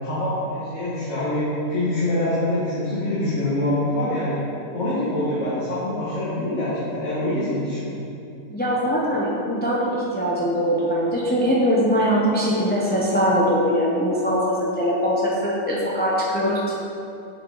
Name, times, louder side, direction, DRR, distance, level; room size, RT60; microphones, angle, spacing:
voice 1, 0.0-4.4 4.7-8.0, left 1 dB, 50° left, -12 dB, 1.9 m, -25 dB
voice 2, 8.5-16.8, equal, 10° left, -5 dB, 0.6 m, -22 dB
8.0 x 5.8 x 4.0 m, 2.7 s
omnidirectional pair, 1.7 m